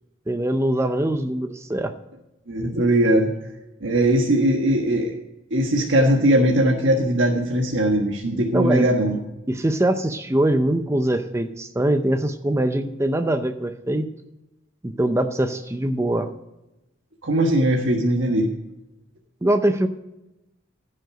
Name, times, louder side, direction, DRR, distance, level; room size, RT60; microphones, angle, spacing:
voice 1, 0.3-1.9 8.5-8.9 9.5-14.1 14.8-16.3 19.4-19.9, right 1 dB, 15° right, 8 dB, 0.6 m, -22 dB
voice 2, 2.5-3.3 3.8-5.1 5.5-9.2 17.2-18.5, right 1 dB, 65° right, 0 dB, 1.5 m, -20 dB
15.5 x 6.5 x 5.0 m, 0.93 s
head